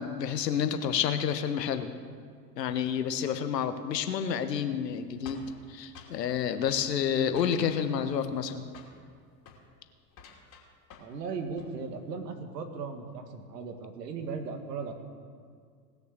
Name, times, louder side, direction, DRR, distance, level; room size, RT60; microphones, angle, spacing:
voice 1, 0.0-1.9 2.6-5.4 5.7-8.6, left 8 dB, 75° left, 9 dB, 1.3 m, -29 dB
sound 1, 5.3-6.2 6.7-6.9 7.3-7.8 8.1-8.5 8.7-9.0 9.4-9.6 10.1-11.2 11.5-11.8, left 5 dB, 40° left, 2.8 m, -51 dB
voice 2, 11.0-14.9, right 5 dB, 75° right, 6 dB, 1.9 m, -37 dB
19.0 x 6.7 x 6.8 m, 2.1 s
hypercardioid pair, 95°, 49 cm